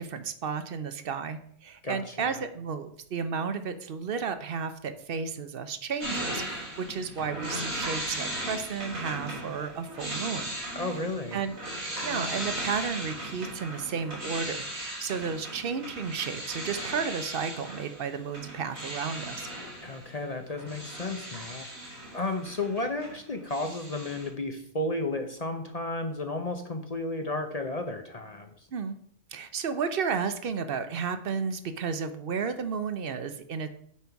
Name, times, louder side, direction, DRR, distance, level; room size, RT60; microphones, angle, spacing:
voice 1, 0.0-10.5 11.3-11.5 12.0-19.5 28.7-29.0 29.3-33.7, right 6 dB, 50° right, 10 dB, 0.8 m, -33 dB
voice 2, 1.8-2.4 10.7-11.4 19.8-28.7, left 2 dB, 40° left, 6 dB, 0.6 m, -33 dB
sound 1, 6.0-23.2 23.5-24.3, right 1 dB, 80° right, 3.9 m, -37 dB
8.6 x 5.5 x 4.6 m, 0.67 s
omnidirectional pair, 1.4 m